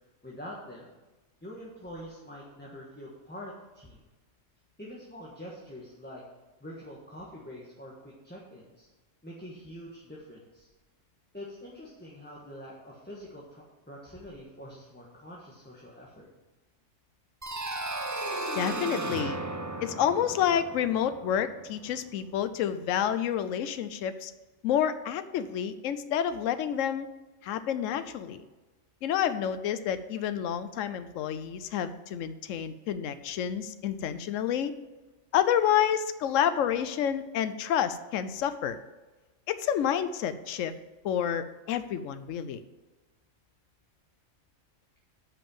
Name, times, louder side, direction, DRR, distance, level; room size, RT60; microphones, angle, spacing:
voice 1, 0.2-0.9 1.4-4.0 4.8-6.2 6.6-8.9 9.2-10.7 11.3-16.3, equal, 10° left, -5 dB, 1.3 m, -45 dB
sound 1, 17.4-22.1, right 2 dB, 20° right, 0.5 m, -35 dB
voice 2, 18.5-19.4 19.8-24.3 24.6-27.1 27.4-28.4 29.0-34.7 35.3-38.8 39.5-40.7 41.0-42.6, left 9 dB, 80° left, 11 dB, 1.0 m, -29 dB
8.5 x 5.4 x 7.2 m, 1.2 s
omnidirectional pair, 1.3 m